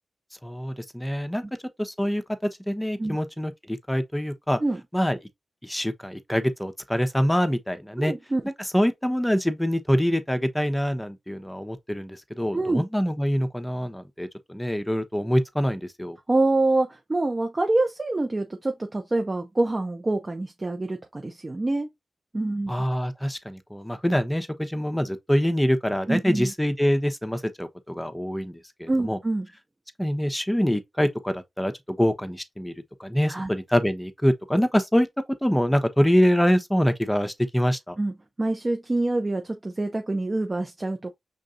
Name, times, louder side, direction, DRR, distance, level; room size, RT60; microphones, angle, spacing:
voice 1, 0.4-1.4 1.8-2.2 2.7-4.6 4.9-5.2 5.6-8.1 8.7-16.2 22.7-29.2 30.0-32.7 33.0-35.1 35.4-38.0, equal, 5° left, 0.9 m, -25 dB
voice 2, 8.0-8.4 12.5-12.8 16.3-21.9 22.3-22.7 26.1-26.5 28.9-29.5 33.3-33.5 38.0-41.1, right 2 dB, 30° right, 0.7 m, -26 dB
5.2 x 3.7 x 2.5 m
cardioid pair, 55°, 0 cm